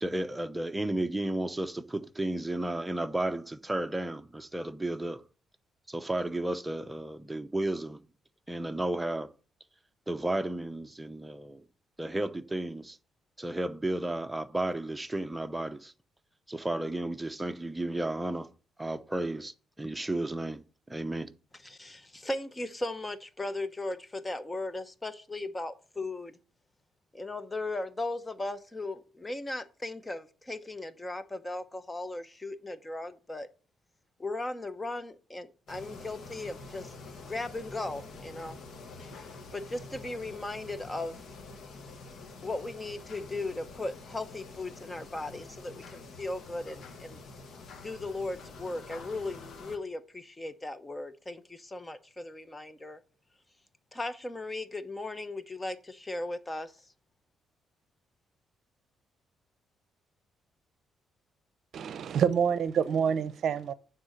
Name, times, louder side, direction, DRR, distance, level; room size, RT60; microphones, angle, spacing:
voice 1, 0.0-5.2 5.9-8.1 8.5-9.3 10.1-11.6 12.0-13.0 13.4-15.9 16.5-18.5 18.8-21.3, right 1 dB, 10° right, 0.7 m, -33 dB
voice 2, 21.6-26.3 27.1-33.5 34.2-36.9 37.3-38.6 39.5-41.1 42.4-47.2 47.8-53.0 53.9-56.7, left 2 dB, 20° left, 0.9 m, -37 dB
Church Organ Off A, 35.7-49.8, left 3 dB, 60° left, 1.5 m, -47 dB
voice 3, 61.7-63.7, right 7 dB, 65° right, 0.6 m, -27 dB
9.3 x 3.9 x 6.4 m
cardioid pair, 90°, 0 cm